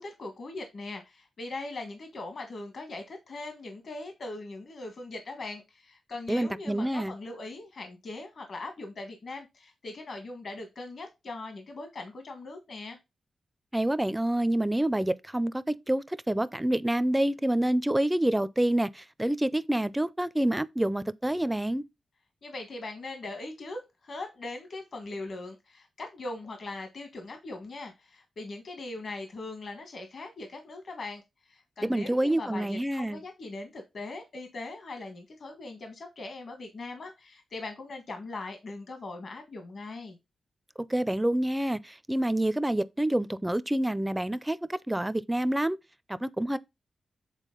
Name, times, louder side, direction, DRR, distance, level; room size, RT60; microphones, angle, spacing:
voice 1, 0.0-13.0 22.4-40.2, left 2 dB, 55° left, 1.4 m, -40 dB
voice 2, 6.3-7.1 13.7-21.8 31.8-33.2 40.9-45.8 46.1-46.6, right 1 dB, 10° right, 0.4 m, -27 dB
8.2 x 4.1 x 3.8 m
wide cardioid pair, 120°, 0 cm